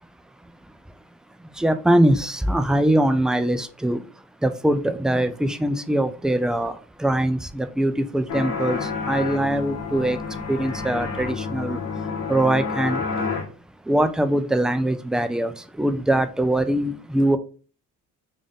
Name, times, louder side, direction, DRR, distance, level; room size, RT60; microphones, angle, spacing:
voice 1, 1.6-4.0 4.4-6.7 7.0-8.8 9.1-10.2 10.5-11.8 12.3-13.0 13.9-15.5 15.8-17.4, right 1 dB, ahead, 9 dB, 0.4 m, -22 dB
sound 1, 8.3-13.5, left 5 dB, 60° left, 1.1 m, -29 dB
3.6 x 2.6 x 3.5 m, 0.37 s
cardioid pair, 90°, 30 cm